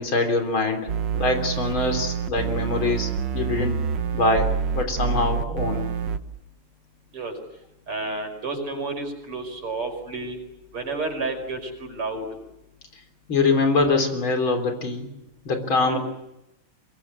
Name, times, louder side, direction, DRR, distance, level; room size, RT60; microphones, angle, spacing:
voice 1, 0.0-3.8 4.1-5.9 13.3-15.1 15.4-16.0, left 3 dB, 65° left, 5 dB, 4.4 m, -24 dB
sound 1, 0.9-6.2, right 7 dB, 60° right, 1.6 m, -27 dB
voice 2, 7.9-10.4 10.7-12.2 15.9-16.0, right 3 dB, 85° right, 4 dB, 6.2 m, -30 dB
25.0 x 22.0 x 8.6 m, 0.89 s
omnidirectional pair, 2.4 m